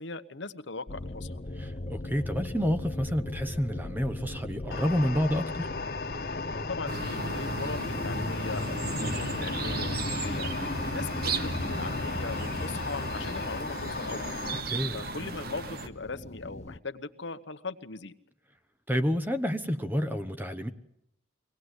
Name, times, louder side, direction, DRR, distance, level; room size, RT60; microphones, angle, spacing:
voice 1, 0.0-1.4 6.5-10.5 10.8-14.3 14.9-18.1, left 3 dB, 70° left, 1.1 m, -39 dB
sound 1, 0.9-16.8, left 1 dB, 35° left, 0.8 m, -38 dB
voice 2, 1.6-5.7 14.7-15.0 18.9-20.7, equal, 10° right, 1.0 m, -29 dB
sound 2, 4.7-14.6, left 4 dB, 55° left, 1.4 m, -36 dB
sound 3, 6.9-15.9, right 3 dB, 55° right, 1.2 m, -36 dB
23.5 x 18.5 x 8.1 m
head